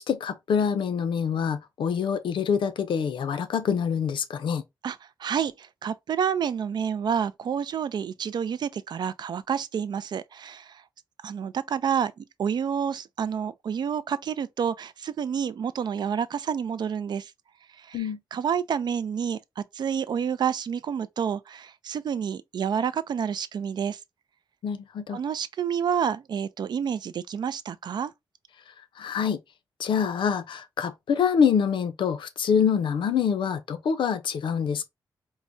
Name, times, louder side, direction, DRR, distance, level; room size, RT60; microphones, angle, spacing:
voice 1, 0.0-4.6 17.9-18.2 24.6-25.2 29.0-29.4 29.8-34.9, left 7 dB, 85° left, 0.6 m, -25 dB
voice 2, 4.8-10.8 11.2-17.3 17.8-24.0 25.1-28.1, right 7 dB, 60° right, 0.3 m, -29 dB
4.6 x 2.1 x 2.6 m
wide cardioid pair, 110°, 8 cm